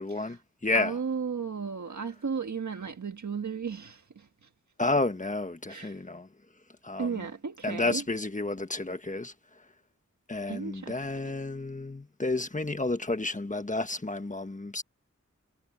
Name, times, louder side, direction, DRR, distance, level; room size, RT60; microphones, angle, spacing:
voice 1, 0.0-1.0 4.8-6.3 6.8-7.2 7.6-9.3 10.3-14.8, left 2 dB, 25° left, 1.4 m, -31 dB
voice 2, 0.7-4.5 5.7-6.0 7.0-8.0 10.5-11.3, right 6 dB, 80° right, 1.6 m, -35 dB
wide cardioid pair, 90°, 29 cm